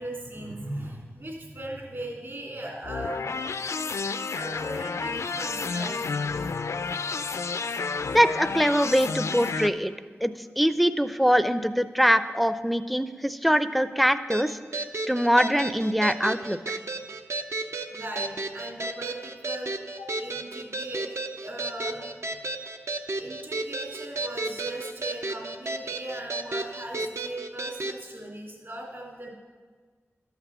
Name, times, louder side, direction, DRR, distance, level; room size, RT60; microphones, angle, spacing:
voice 1, 0.0-3.3 4.3-6.1 17.9-22.1 23.2-29.3, right 1 dB, 50° right, -2 dB, 2.6 m, -38 dB
sound 1, 2.8-9.7, left 4 dB, 80° left, 0.4 m, -31 dB
voice 2, 8.1-9.9 10.2-14.6 15.1-16.8, equal, ahead, 12 dB, 0.4 m, -23 dB
sound 2, 14.3-28.0, right 2 dB, 70° right, 0.6 m, -33 dB
12.0 x 5.9 x 6.9 m, 1.5 s
wide cardioid pair, 80°, 5 cm